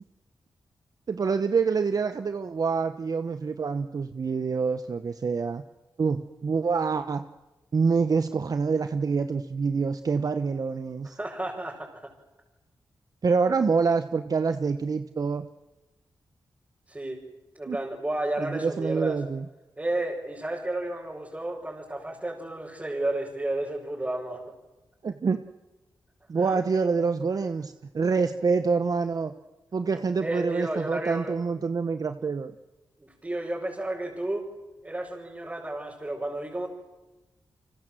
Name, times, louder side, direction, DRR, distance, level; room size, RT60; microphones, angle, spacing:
voice 1, 1.1-5.6 6.0-7.2 7.7-11.2 13.2-15.5 17.7-17.8 18.4-19.4 25.0-25.4 26.3-29.3 29.7-32.5, right 5 dB, 50° right, 9 dB, 1.0 m, -26 dB
voice 2, 11.0-12.1 16.9-17.2 17.5-19.2 19.8-24.4 26.4-26.6 30.2-31.3 33.0-34.5 34.8-36.7, right 1 dB, 20° right, -4 dB, 5.9 m, -32 dB
29.5 x 25.0 x 7.7 m, 1.1 s
wide cardioid pair, 100°, 8 cm